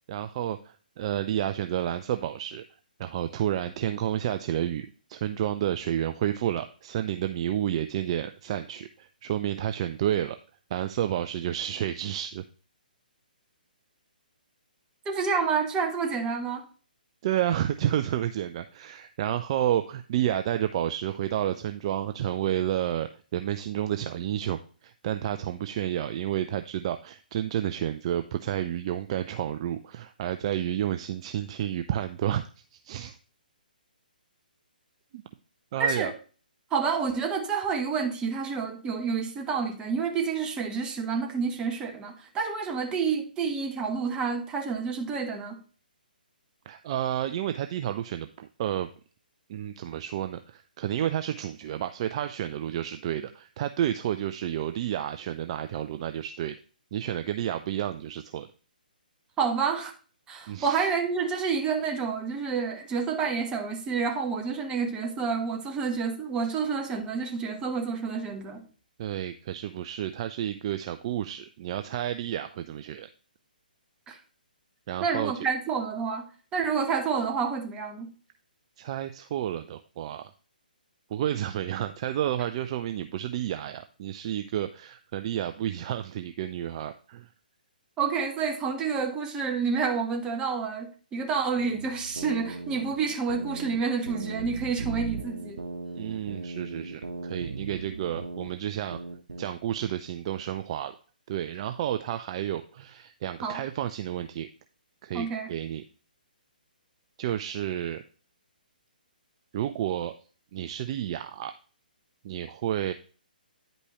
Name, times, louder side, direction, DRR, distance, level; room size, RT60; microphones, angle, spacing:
voice 1, 0.1-2.6 3.0-10.4 10.7-12.4 15.1-15.2 17.2-32.4 32.7-33.2 35.1-35.2 35.7-36.1 46.7-48.9 49.5-56.6 56.9-58.5 60.5-60.9 69.0-73.1 74.9-75.3 78.8-80.3 81.1-87.3 95.9-99.0 99.4-101.0 101.3-104.5 105.0-105.8 107.2-108.0 109.5-110.1 110.5-111.5 112.2-112.9, right 11 dB, 40° right, 0.4 m, -30 dB
voice 2, 15.0-16.6 35.8-36.1 36.7-45.6 59.4-59.9 60.3-68.6 74.1-74.2 75.0-76.2 76.5-78.1 88.0-95.6 103.4-103.6 105.1-105.5, right 5 dB, 15° right, 1.2 m, -29 dB
sound 1, 91.6-93.8 94.1-98.5 98.9-99.5, right 3 dB, 75° right, 1.1 m, -37 dB
9.8 x 5.3 x 3.0 m
figure-of-eight pair, 135°, 5 cm